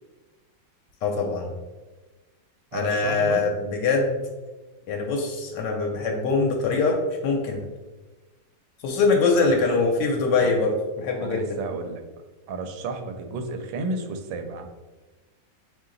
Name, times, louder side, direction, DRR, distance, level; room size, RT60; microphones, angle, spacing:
voice 1, 1.0-1.5 2.7-4.2 4.9-7.6 8.8-11.4, left 4 dB, 80° left, 1 dB, 1.2 m, -23 dB
voice 2, 2.7-3.4 9.4-10.6 11.2-12.0 12.5-14.7, right 3 dB, 90° right, 6 dB, 1.3 m, -33 dB
3.7 x 3.1 x 3.8 m, 1.2 s
omnidirectional pair, 1.9 m